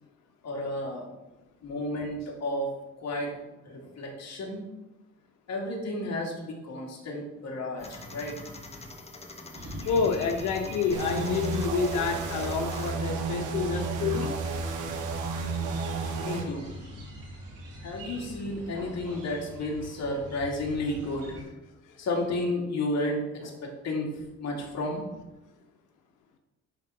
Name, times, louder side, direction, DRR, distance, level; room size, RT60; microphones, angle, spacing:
voice 1, 0.4-1.1 1.6-3.3 3.6-4.6 5.5-8.3 16.2-16.7 17.8-21.4 22.0-24.1 24.4-25.0, left 1 dB, 60° left, -1 dB, 2.6 m, -32 dB
sound 1, 7.8-12.9, left 2 dB, 20° left, 1.2 m, -44 dB
sound 2, 9.5-21.4, equal, 55° right, 3.1 m, -43 dB
voice 2, 9.8-14.3, left 5 dB, 85° left, 4 dB, 1.0 m, -28 dB
sound 3, 10.9-16.4, right 4 dB, 85° right, 1.3 m, -32 dB
10.5 x 3.9 x 5.7 m, 1.1 s
cardioid pair, 90°, 30 cm